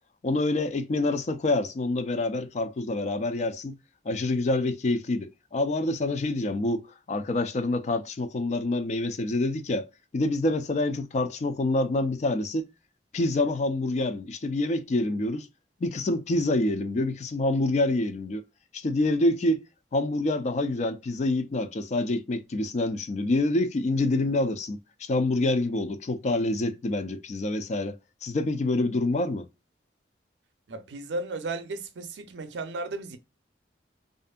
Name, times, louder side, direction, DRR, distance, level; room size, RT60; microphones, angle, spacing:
voice 1, 0.2-3.8 4.1-9.9 10.1-12.7 13.1-15.5 15.8-18.4 18.7-19.6 19.9-27.9 28.2-29.5, left 2 dB, 40° left, 0.4 m, -27 dB
voice 2, 30.7-33.2, right 2 dB, 85° right, 0.5 m, -34 dB
2.6 x 2.5 x 2.2 m
head